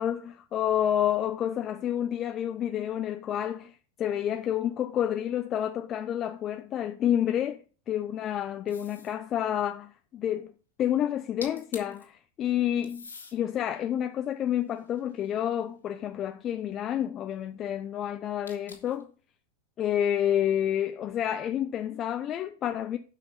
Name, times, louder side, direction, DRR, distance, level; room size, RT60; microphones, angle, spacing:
voice 1, 0.0-10.5 10.8-13.1 13.3-19.1 19.8-23.0, left 10 dB, 30° left, 0.5 m, -29 dB
sound 1, 8.7-9.2 11.1-11.2 11.4-12.0 12.8-13.4 14.0-15.5 18.5-19.0, left 4 dB, 75° left, 2.0 m, -46 dB
8.6 x 5.6 x 5.4 m
figure-of-eight pair, 90°, 0 cm